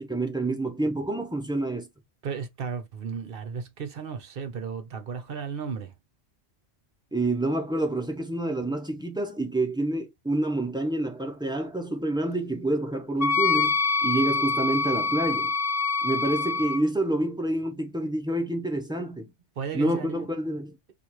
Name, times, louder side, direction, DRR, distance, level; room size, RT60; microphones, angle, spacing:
voice 1, 0.0-1.9 7.1-13.7 14.0-15.5 16.0-19.3 19.7-20.8, right 1 dB, 5° right, 0.6 m, -28 dB
voice 2, 2.2-5.9 19.6-20.4, right 6 dB, 55° right, 0.9 m, -34 dB
Wind instrument woodwind instrument, 13.2-16.8, left 4 dB, 50° left, 0.4 m, -25 dB
4.2 x 2.5 x 3.0 m
omnidirectional pair, 1.2 m